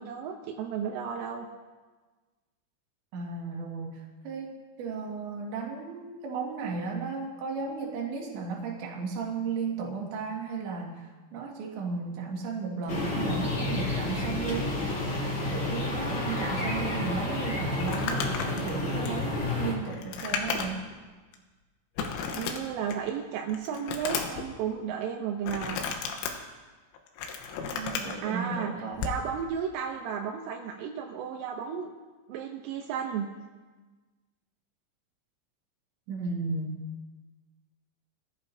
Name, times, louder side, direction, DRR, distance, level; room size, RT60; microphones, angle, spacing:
voice 1, 0.0-1.5 16.1-16.4 22.3-25.8 28.2-31.9 32.3-33.3, right 7 dB, 85° right, 1 dB, 3.5 m, -33 dB
voice 2, 3.1-14.8 15.5-20.8 27.7-29.0 36.1-36.8, right 5 dB, 70° right, -1 dB, 4.2 m, -35 dB
sound 1, 12.9-19.7, left 2 dB, 35° left, 3.2 m, -30 dB
Crumpling crinkling, 17.8-20.9 21.3-21.4 22.0-23.1 23.5-24.5 25.4-26.3 26.9-28.2 28.9-29.2, left 6 dB, 85° left, 3.8 m, -33 dB
23.0 x 14.5 x 2.8 m, 1.3 s
omnidirectional pair, 5.6 m